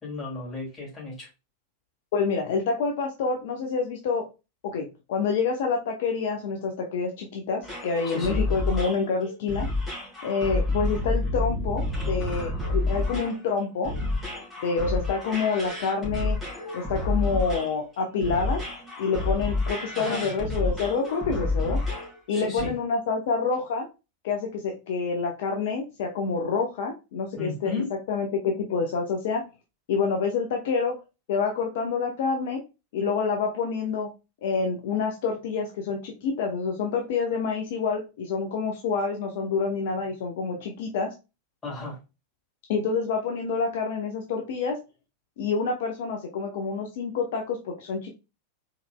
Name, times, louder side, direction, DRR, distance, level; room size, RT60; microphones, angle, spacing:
voice 1, 0.0-1.3 8.0-8.4 20.0-20.4 22.3-22.7 27.4-28.0 28.4-28.5 41.6-42.0, left 3 dB, 20° left, 2.3 m, -34 dB
voice 2, 2.1-4.2 4.6-9.7 10.2-13.9 14.6-16.4 16.7-18.6 19.0-21.8 22.3-23.9 24.2-27.7 28.1-29.4 29.9-30.9 31.3-32.6 32.9-34.1 34.4-41.1 42.7-44.8 45.4-48.1, left 5 dB, 55° left, 0.7 m, -27 dB
sound 1, 7.6-22.2 22.6-22.7, left 2 dB, ahead, 2.2 m, -29 dB
4.1 x 3.9 x 2.2 m
figure-of-eight pair, 90°, 0 cm